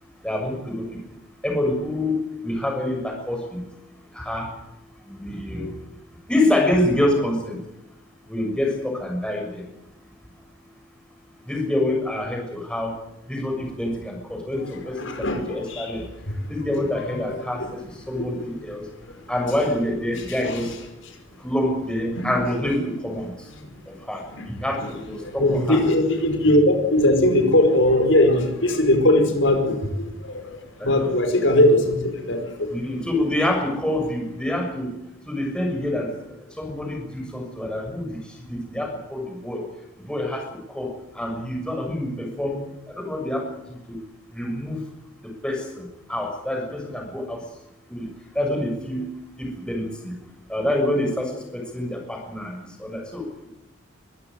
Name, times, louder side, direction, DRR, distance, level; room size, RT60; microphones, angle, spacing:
voice 1, 0.2-1.0 1.4-3.6 4.1-4.5 5.0-5.7 6.3-7.6 8.3-9.6 11.4-13.0 13.3-16.0 16.5-18.9 19.3-20.7 21.4-23.3 23.9-25.8 30.8-31.1 32.7-34.9 35.3-36.1 36.4-39.6 40.0-44.0 44.3-44.8 45.2-47.4 47.9-48.1 48.3-49.0 49.4-50.1 50.5-53.5, left 1 dB, 5° left, 1 dB, 6.7 m, -27 dB
voice 2, 15.0-15.4 15.7-15.9 16.3-16.5 17.2-17.4 18.2-18.3 20.4-20.6 22.1-22.3 23.6-23.7 24.8-24.9 25.2-30.6 30.8-32.7, left 1 dB, 70° left, 5 dB, 5.2 m, -20 dB
24.0 x 15.0 x 9.4 m, 0.91 s
head